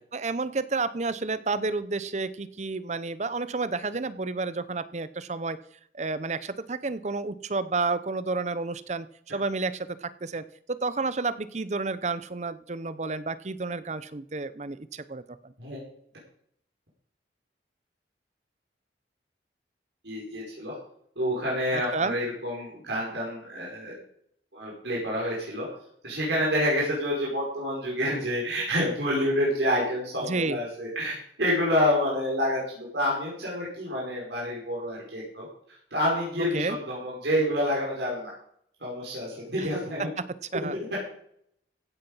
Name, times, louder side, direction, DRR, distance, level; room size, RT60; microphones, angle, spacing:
voice 1, 0.1-5.6 5.9-15.5 21.7-22.2 30.2-30.6 36.4-36.8 39.6-39.7 40.0-40.2 40.5-40.8, right 3 dB, 40° right, 15 dB, 0.7 m, -31 dB
voice 2, 20.0-20.8 21.2-24.0 24.5-25.7 26.0-35.5 35.9-38.3 38.8-40.1, equal, 85° right, -5 dB, 5.3 m, -28 dB
16.0 x 8.7 x 5.6 m, 0.68 s
head